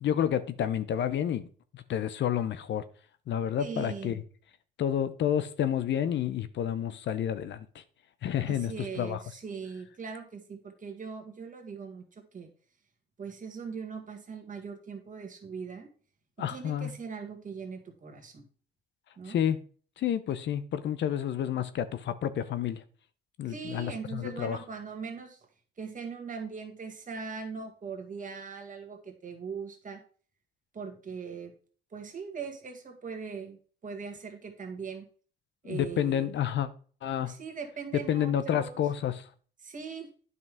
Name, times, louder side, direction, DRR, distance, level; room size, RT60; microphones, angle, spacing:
voice 1, 0.0-1.5 1.7-2.8 3.3-4.2 4.8-7.7 8.2-9.2 16.4-16.9 19.3-19.6 20.0-22.8 23.4-24.6 35.7-36.7 37.0-37.3 38.1-39.2, left 9 dB, 65° left, 0.7 m, -29 dB
voice 2, 3.6-4.2 8.5-12.5 13.2-15.9 16.5-18.5 19.2-19.4 23.5-25.4 25.8-30.0 30.7-31.5 31.9-35.1 35.6-36.3 37.2-38.8 39.6-40.1, right 5 dB, 40° right, 1.8 m, -40 dB
9.5 x 5.4 x 3.6 m
cardioid pair, 90°, 20 cm